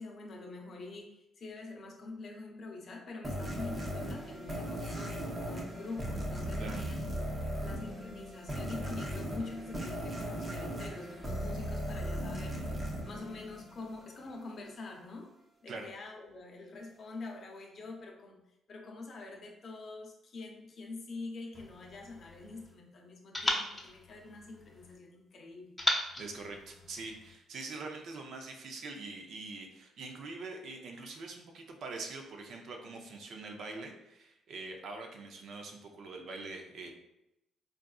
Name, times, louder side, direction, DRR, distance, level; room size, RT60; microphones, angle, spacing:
voice 1, 0.0-7.2 7.6-15.3 15.6-18.4 18.7-25.8, left 3 dB, 50° left, 1 dB, 0.7 m, -45 dB
sound 1, 3.2-14.0, equal, 25° right, 0.8 m, -37 dB
sound 2, 21.5-22.8 23.3-25.0 25.8-27.4, left 1 dB, 10° left, 0.6 m, -37 dB
voice 2, 26.2-36.9, right 3 dB, 65° right, 3 dB, 0.5 m, -44 dB
3.7 x 2.4 x 2.3 m, 0.86 s
cardioid pair, 100°, 0 cm